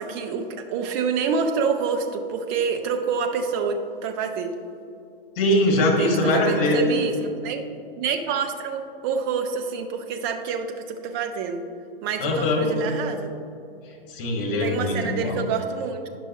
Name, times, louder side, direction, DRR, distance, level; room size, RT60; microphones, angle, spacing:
voice 1, 0.0-4.5 6.0-7.6 8.0-11.6 12.0-13.3 14.6-16.1, right 6 dB, 25° right, 5 dB, 0.5 m, -27 dB
voice 2, 5.4-6.8 12.2-12.7 14.1-15.4, left 1 dB, 40° left, 1 dB, 1.8 m, -22 dB
9.9 x 6.0 x 3.0 m, 2.6 s
figure-of-eight pair, 120°, 30 cm